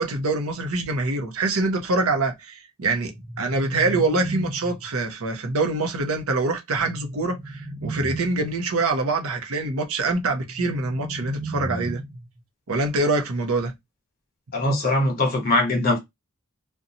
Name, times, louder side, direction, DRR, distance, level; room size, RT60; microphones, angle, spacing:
voice 1, 0.0-3.1 3.4-12.0 12.7-13.7, right 3 dB, 75° right, 0.7 m, -25 dB
sound 1, 3.0-5.0 6.7-8.6 10.4-12.4, right 2 dB, 15° right, 0.6 m, -35 dB
voice 2, 14.5-16.0, left 1 dB, 45° left, 1.0 m, -21 dB
2.6 x 2.2 x 2.7 m
head